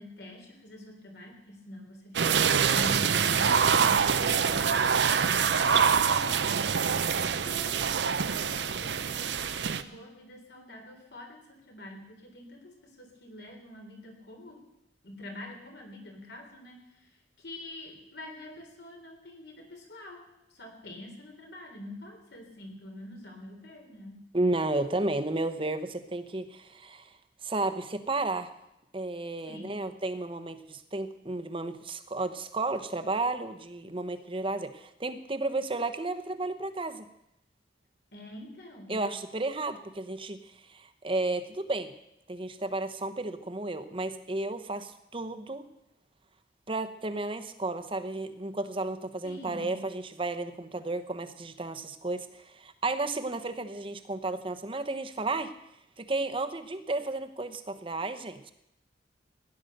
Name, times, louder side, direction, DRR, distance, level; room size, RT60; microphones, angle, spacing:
voice 1, 0.0-7.2 7.4-7.9 8.2-14.6 15.0-17.1 17.4-24.2 29.4-29.9 38.1-39.1 49.2-49.8, left 1 dB, 70° left, 2 dB, 3.7 m, -46 dB
sound 1, 2.1-9.8, right 6 dB, 80° right, 0.7 m, -25 dB
voice 2, 24.3-27.1 27.4-28.5 28.9-37.1 38.9-40.4 40.7-41.9 42.3-45.7 46.7-55.5 56.0-58.5, right 2 dB, 30° right, 10 dB, 1.0 m, -33 dB
16.5 x 10.5 x 6.7 m, 0.85 s
head